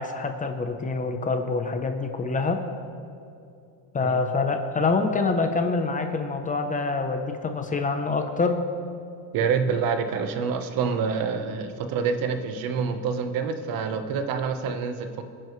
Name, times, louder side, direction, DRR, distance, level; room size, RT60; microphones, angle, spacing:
voice 1, 0.0-2.6 3.9-8.6, left 4 dB, 20° left, 6 dB, 0.7 m, -26 dB
voice 2, 9.3-15.2, right 6 dB, 50° right, 7 dB, 1.1 m, -27 dB
26.5 x 10.5 x 3.2 m, 2.5 s
cardioid pair, 155°, 43 cm